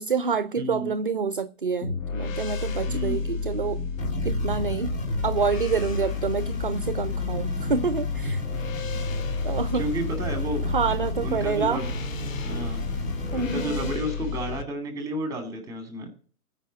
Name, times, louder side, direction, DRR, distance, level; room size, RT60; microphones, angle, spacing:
voice 1, 0.0-3.8 4.2-5.0 5.2-8.4 9.4-9.9 10.7-11.8 13.3-13.9, right 5 dB, 35° right, 0.5 m, -27 dB
voice 2, 0.6-0.9 2.9-3.2 9.8-10.6 11.1-11.9 12.4-12.9 13.4-16.1, right 1 dB, 10° right, 2.5 m, -31 dB
sound 1, 1.8-14.6, left 5 dB, 55° left, 1.7 m, -31 dB
sound 2, 4.0-14.0, right 1 dB, 15° left, 3.1 m, -34 dB
15.5 x 5.7 x 6.3 m
figure-of-eight pair, 150°, 46 cm